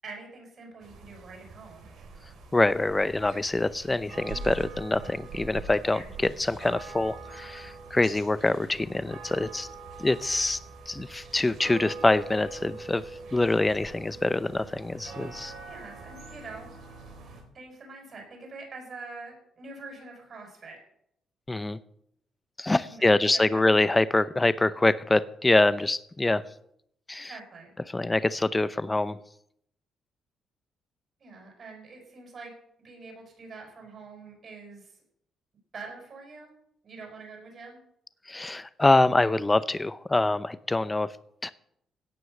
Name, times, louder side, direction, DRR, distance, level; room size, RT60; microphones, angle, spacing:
voice 1, 0.0-1.9 5.9-6.0 15.7-16.7 17.5-20.8 22.8-23.8 27.2-27.7 31.2-32.5 32.8-34.9 35.7-36.5 36.8-37.8, right 3 dB, 45° right, 2 dB, 5.9 m, -45 dB
sound 1, 0.8-17.4, right 4 dB, 70° right, 3.6 m, -43 dB
voice 2, 2.5-9.7 10.0-10.6 10.9-13.0 13.3-15.5 21.5-21.8 22.6-26.4 27.1-27.3 27.9-29.2 38.3-41.1 41.4-41.5, left 2 dB, 15° left, 15 dB, 0.7 m, -25 dB
17.0 x 6.2 x 6.6 m, 0.72 s
cardioid pair, 90°, 0 cm